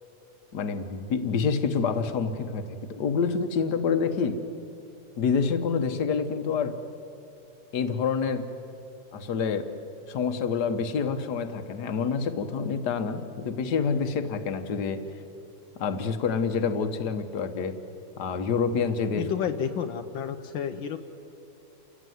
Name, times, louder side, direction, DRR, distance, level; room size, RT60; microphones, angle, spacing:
voice 1, 0.5-4.4 5.2-6.8 7.7-8.5 9.1-9.7 10.1-15.0 15.8-17.8 18.2-19.2, left 5 dB, 60° left, 8 dB, 1.7 m, -27 dB
voice 2, 19.2-21.0, left 8 dB, 80° left, 6 dB, 1.6 m, -30 dB
29.0 x 15.0 x 9.4 m, 2.8 s
omnidirectional pair, 2.1 m